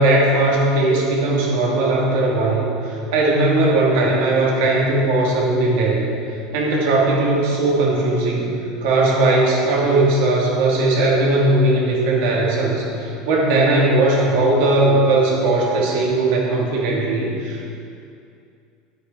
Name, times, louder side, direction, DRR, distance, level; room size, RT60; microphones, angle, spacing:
voice 1, 0.0-6.1 6.5-8.5 8.8-17.7, right 2 dB, 75° right, -3 dB, 2.4 m, -18 dB
10.0 x 8.5 x 4.6 m, 2.5 s
cardioid pair, 160°, 0 cm